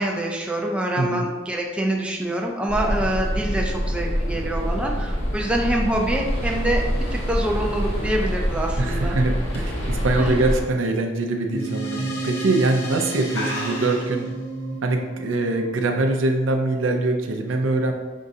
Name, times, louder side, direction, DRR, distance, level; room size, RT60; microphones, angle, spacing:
voice 1, 0.0-6.8 7.1-9.2 10.2-10.4, right 1 dB, 5° right, -1 dB, 0.4 m, -25 dB
sound 1, 2.7-10.6, equal, 30° left, 1.1 m, -25 dB
sound 2, 7.8-10.3 10.7-11.0 11.4-11.5 12.3-12.5 12.8-12.9 13.3-14.3, left 1 dB, 75° left, 1.3 m, -35 dB
voice 2, 8.8-14.3 14.8-17.9, right 2 dB, 90° right, 4 dB, 0.5 m, -23 dB
sound 3, 11.5-16.3, right 2 dB, 55° left, 0.8 m, -31 dB
5.2 x 3.6 x 2.7 m, 1.3 s
head